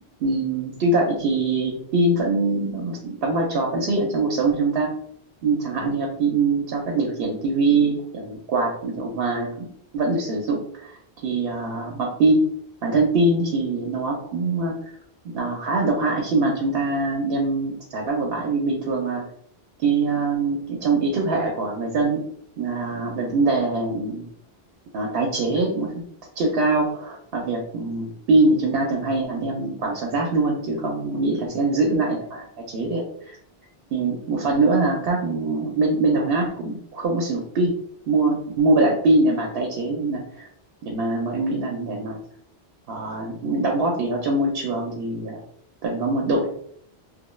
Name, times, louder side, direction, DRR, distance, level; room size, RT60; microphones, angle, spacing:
voice 1, 0.2-4.9 5.4-9.7 9.9-10.9 11.2-12.5 12.8-14.8 15.3-19.2 19.8-22.2 22.6-24.3 24.9-25.9 26.4-33.4 33.9-37.7 38.1-40.5 40.8-42.2 42.9-45.4 45.8-46.5, right 2 dB, 70° right, 0 dB, 0.8 m, -23 dB
2.2 x 2.1 x 3.0 m, 0.65 s
omnidirectional pair, 1.1 m